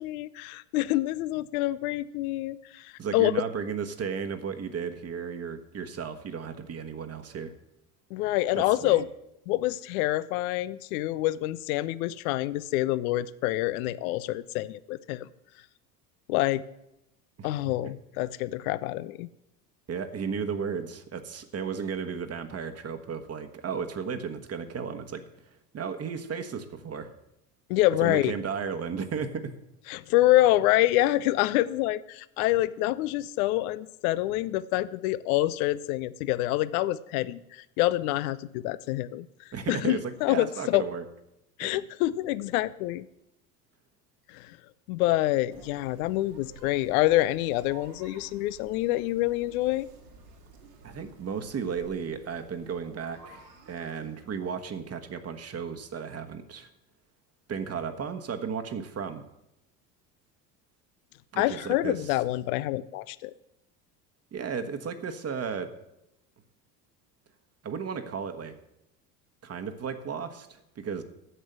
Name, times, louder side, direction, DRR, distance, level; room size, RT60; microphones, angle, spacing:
voice 1, 0.0-3.3 8.1-9.1 9.5-15.3 16.3-16.6 17.4-19.3 27.7-28.3 29.9-39.3 39.7-40.8 41.6-43.1 44.3-44.6 44.9-49.9 61.4-63.3, left 16 dB, 60° left, 18 dB, 0.6 m, -26 dB
voice 2, 3.0-7.5 8.8-9.0 17.4-17.5 17.8-17.9 19.9-25.2 25.7-27.1 28.0-29.5 39.5-41.0 41.6-41.8 50.8-56.7 57.5-59.2 61.3-62.1 64.3-65.7 67.6-68.6 69.4-71.0, right 6 dB, 30° right, 7 dB, 1.3 m, -34 dB
sound 1, 45.5-54.9, right 3 dB, 75° right, 2.7 m, -53 dB
11.0 x 7.8 x 7.9 m, 0.86 s
figure-of-eight pair, 70°, 49 cm